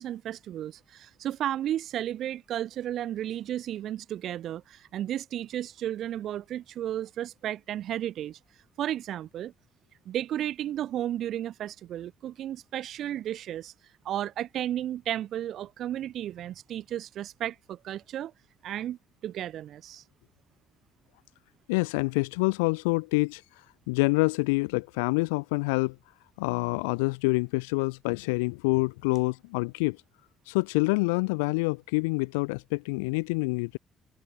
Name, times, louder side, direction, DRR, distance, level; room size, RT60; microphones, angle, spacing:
voice 1, 0.0-8.4 8.8-9.5 10.1-13.7 14.1-18.3 18.6-19.0 19.2-20.0, right 11 dB, 65° right, 5.2 m, -33 dB
voice 2, 21.7-23.4 23.9-25.9 26.4-30.0 30.5-33.8, left 28 dB, 90° left, 1.2 m, -27 dB
hypercardioid pair, 55°, 0 cm